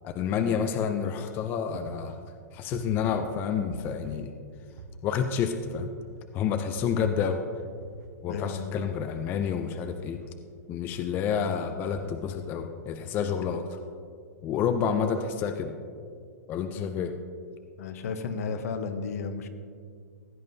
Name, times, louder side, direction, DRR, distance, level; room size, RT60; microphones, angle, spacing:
voice 1, 0.0-2.2 2.5-4.3 5.0-5.9 6.3-7.4 8.2-10.2 10.7-13.8 14.4-15.7 16.5-17.2, left 7 dB, 25° left, 7 dB, 0.4 m, -29 dB
sound 1, 1.0-1.4 1.7-3.4 3.7-5.3 5.7-6.3 6.8-8.3 8.8-10.6 10.9-11.4 11.9-12.5, right 2 dB, 70° right, 0.9 m, -45 dB
voice 2, 8.3-8.8 16.7-16.8 17.8-19.5, left 5 dB, 65° left, 8 dB, 0.9 m, -33 dB
16.0 x 9.1 x 2.7 m, 2.2 s
hypercardioid pair, 150°, 9 cm